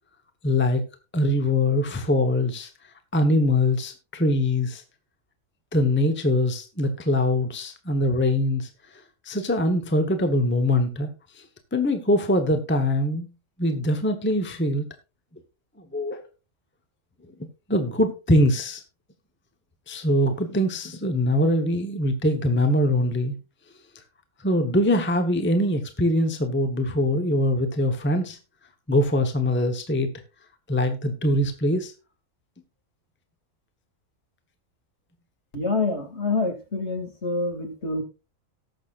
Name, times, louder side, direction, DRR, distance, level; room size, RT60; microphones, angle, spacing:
voice 1, 0.4-0.8 1.1-2.7 3.1-4.8 5.7-11.4 11.7-13.3 13.6-14.8 15.8-16.2 17.7-18.8 19.9-23.3 24.4-28.4 28.9-30.1 30.7-31.9, left 1 dB, 10° left, 6 dB, 0.9 m, -23 dB
voice 2, 35.5-38.0, left 3 dB, 55° left, 3 dB, 2.7 m, -26 dB
18.5 x 6.4 x 2.4 m, 0.31 s
omnidirectional pair, 1.4 m